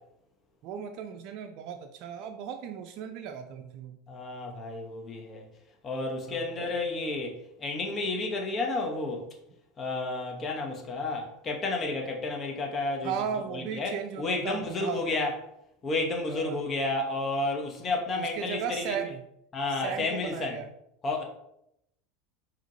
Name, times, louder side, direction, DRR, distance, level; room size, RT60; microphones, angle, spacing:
voice 1, 0.6-4.0 6.3-6.5 13.0-15.3 16.3-16.6 18.2-19.2 19.7-20.7, right 7 dB, 55° right, 0.4 m, -36 dB
voice 2, 4.1-5.5 5.8-9.3 9.8-13.1 13.5-15.3 15.8-19.0 19.5-20.6 21.0-21.2, left 2 dB, 35° left, 1.0 m, -31 dB
4.9 x 3.0 x 2.8 m
hypercardioid pair, 85°, 0 cm